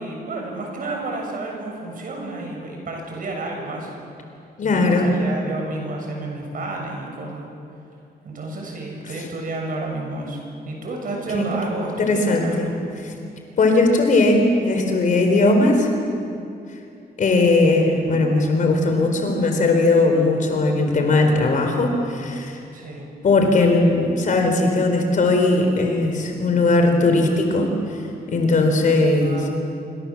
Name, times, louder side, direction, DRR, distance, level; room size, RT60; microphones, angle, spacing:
voice 1, 0.0-3.9 4.6-7.5 8.2-10.4 10.7-12.7 22.7-23.0 29.2-29.5, right 2 dB, 55° right, 1 dB, 7.1 m, -30 dB
voice 2, 4.6-5.1 9.1-9.2 11.4-11.5 12.0-12.7 13.0-13.1 13.6-15.9 17.2-22.6 23.2-29.5, left 2 dB, 50° left, 4 dB, 4.4 m, -18 dB
27.0 x 25.5 x 7.4 m, 2.6 s
wide cardioid pair, 150°, 17 cm